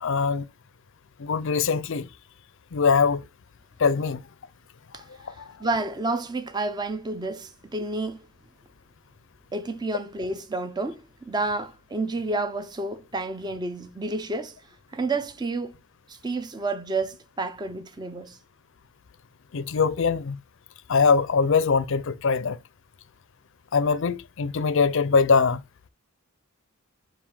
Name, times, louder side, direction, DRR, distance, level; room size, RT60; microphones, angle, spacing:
voice 1, 0.0-0.5 1.2-2.1 2.7-3.2 3.8-4.2 5.2-5.6 19.5-20.4 20.9-22.6 23.7-25.6, left 5 dB, 60° left, 0.5 m, -22 dB
voice 2, 5.3-8.2 9.5-14.6 14.9-15.8 16.1-18.4, right 3 dB, 20° right, 0.6 m, -30 dB
7.1 x 2.6 x 5.6 m
head